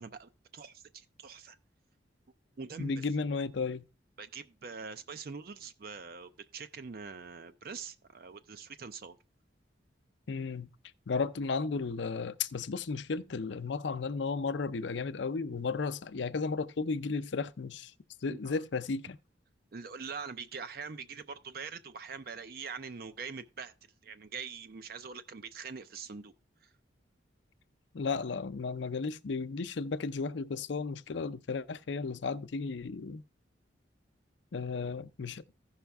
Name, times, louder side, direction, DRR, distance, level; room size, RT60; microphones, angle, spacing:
voice 1, 0.0-1.6 2.6-3.1 4.2-9.2 18.3-18.6 19.7-23.7 24.0-26.3 26.6-26.7, right 5 dB, 50° right, 0.5 m, -43 dB
voice 2, 2.8-3.8 10.3-10.7 11.1-17.9 18.2-19.2 27.9-33.2 34.5-35.4, left 4 dB, 75° left, 0.5 m, -34 dB
15.0 x 5.7 x 3.4 m
head